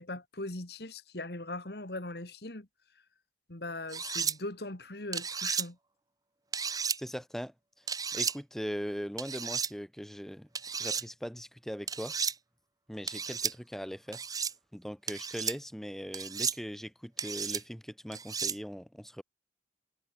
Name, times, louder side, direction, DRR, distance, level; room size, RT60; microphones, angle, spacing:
voice 1, 0.0-2.7 3.5-5.8, left 2 dB, 60° left, 2.4 m, -40 dB
sound 1, 3.9-4.4 5.1-5.7 6.5-7.0 7.9-8.4 9.2-9.7 10.6-11.0 11.9-12.3 13.1-13.5 14.1-14.5 15.1-15.6 16.1-16.6 17.2-17.6 18.1-18.6, right 6 dB, 20° right, 1.3 m, -33 dB
voice 2, 7.0-7.8 8.1-10.5 10.8-12.2 12.9-14.2 14.7-19.2, equal, ahead, 2.2 m, -40 dB
head